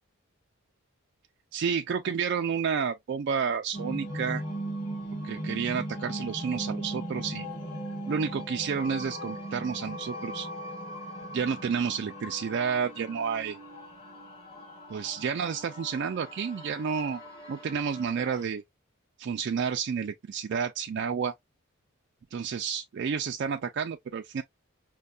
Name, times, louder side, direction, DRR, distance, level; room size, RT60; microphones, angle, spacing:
voice 1, 1.5-4.4 5.2-7.5 8.1-10.5 11.3-13.6 14.9-17.2 17.5-18.6 19.2-21.3 22.3-24.4, right 6 dB, 50° right, 0.3 m, -30 dB
sound 1, 3.7-18.4, right 1 dB, 25° left, 1.4 m, -39 dB
5.3 x 2.2 x 2.3 m
head